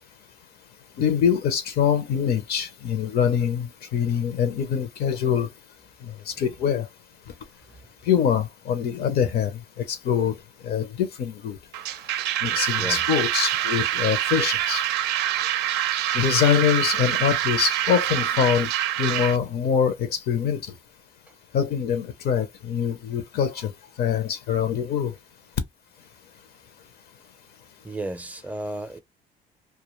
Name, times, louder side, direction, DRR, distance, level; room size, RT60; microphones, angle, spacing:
voice 1, 1.0-5.5 6.0-6.9 8.1-10.4 10.6-11.6 12.4-14.8 16.1-18.7 19.0-20.7 21.5-23.7 24.0-25.1, left 8 dB, 70° left, 0.6 m, -24 dB
sound 1, 11.7-19.4, right 12 dB, 80° right, 0.4 m, -25 dB
voice 2, 12.5-13.0 27.8-29.0, right 2 dB, 10° right, 0.5 m, -34 dB
2.3 x 2.2 x 3.0 m
cardioid pair, 110°, 17 cm